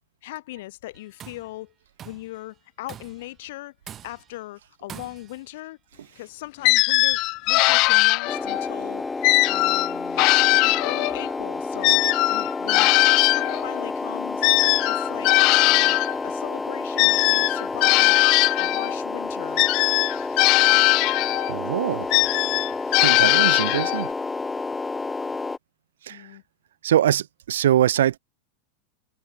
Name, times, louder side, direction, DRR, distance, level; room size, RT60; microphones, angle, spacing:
voice 1, 0.2-1.7 2.0-3.7 4.0-5.8 6.2-7.2 7.5-9.0 9.5-12.0 12.3-12.9 13.2-14.5 14.9-16.0 16.2-18.2 18.6-19.6 21.8-21.9 26.1-26.4, left 17 dB, 65° left, 2.3 m, -39 dB
Tools, 0.9-1.5 2.0-2.4 2.9-3.3 3.9-4.4 4.9-5.5, right 10 dB, 30° right, 3.4 m, -43 dB
sound 1, 6.6-8.7 9.2-11.3 11.8-16.2 17.0-18.9 19.6-21.5 22.1-24.1, left 24 dB, 50° left, 0.7 m, -20 dB
sound 2, 8.3-25.6, left 3 dB, 10° left, 0.5 m, -30 dB
voice 2, 21.5-22.1 23.0-24.1 26.0-26.3 26.8-28.2, right 11 dB, 80° right, 0.3 m, -23 dB
hypercardioid pair, 105°, 0 cm